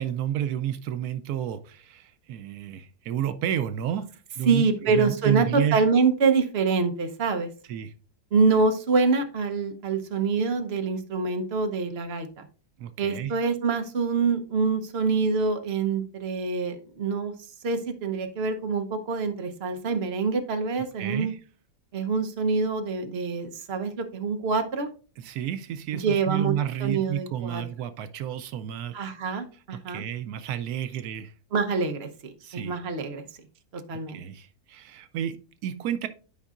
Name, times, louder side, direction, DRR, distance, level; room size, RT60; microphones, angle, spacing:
voice 1, 0.0-5.8 7.7-7.9 12.8-13.4 21.0-21.4 25.2-29.0 29.9-31.3 32.4-32.8 34.1-36.1, right 10 dB, 80° right, 1.1 m, -31 dB
voice 2, 4.4-7.5 8.3-12.5 13.0-17.3 17.6-21.3 21.9-24.9 26.0-26.5 26.8-27.6 28.9-30.0 31.5-33.2 33.7-34.2, right 4 dB, 45° right, 1.1 m, -25 dB
12.0 x 5.3 x 2.5 m
omnidirectional pair, 1.6 m